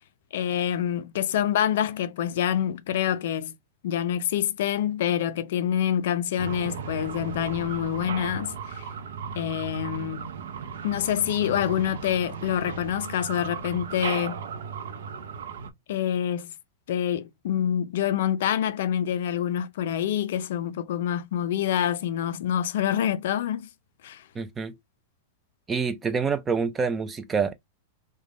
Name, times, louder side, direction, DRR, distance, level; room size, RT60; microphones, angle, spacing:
voice 1, 0.3-3.5 3.8-8.9 9.4-10.3 10.8-14.4 15.9-16.5 16.9-23.7 24.0-24.2, left 10 dB, 65° left, 0.4 m, -26 dB
sound 1, 6.4-15.7, right 6 dB, 85° right, 0.5 m, -36 dB
voice 2, 24.4-24.7 25.7-27.5, right 5 dB, 15° right, 0.3 m, -27 dB
3.4 x 2.2 x 2.4 m
supercardioid pair, 160°, 0 cm